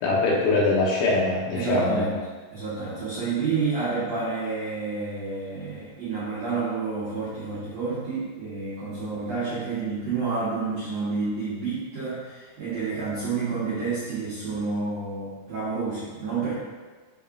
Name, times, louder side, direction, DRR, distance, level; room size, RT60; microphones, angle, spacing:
voice 1, 0.0-2.1, left 3 dB, 85° left, -4 dB, 3.6 m, -22 dB
voice 2, 1.5-2.2 2.5-16.5, right 4 dB, 90° right, -10 dB, 1.4 m, -29 dB
10.5 x 3.6 x 2.6 m, 1.4 s
omnidirectional pair, 5.2 m